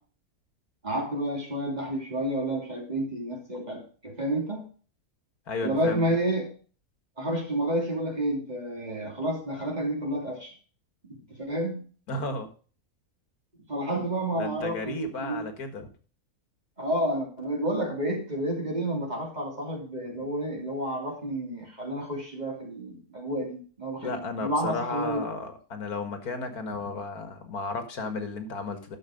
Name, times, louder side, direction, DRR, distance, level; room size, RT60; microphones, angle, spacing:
voice 1, 0.8-4.6 5.6-6.5 7.2-10.5 11.4-11.9 13.7-15.5 16.8-25.3, right 1 dB, 30° right, 0 dB, 3.0 m, -30 dB
voice 2, 5.5-6.1 12.1-12.5 14.4-15.9 24.0-29.0, left 3 dB, 85° left, 7 dB, 2.2 m, -33 dB
11.5 x 6.5 x 5.1 m, 0.39 s
omnidirectional pair, 1.6 m